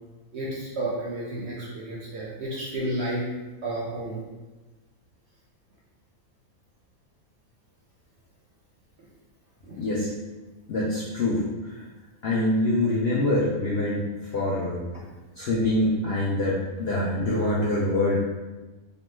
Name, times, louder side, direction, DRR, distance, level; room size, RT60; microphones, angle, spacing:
voice 1, 0.3-3.2 3.6-4.2 9.6-9.8, right 1 dB, 65° right, -4 dB, 0.7 m, -31 dB
voice 2, 9.8-10.1 10.7-11.8 12.2-14.0 14.3-14.8 15.4-18.2, left 1 dB, 75° left, -6 dB, 0.5 m, -25 dB
2.9 x 2.1 x 3.2 m, 1.2 s
omnidirectional pair, 1.6 m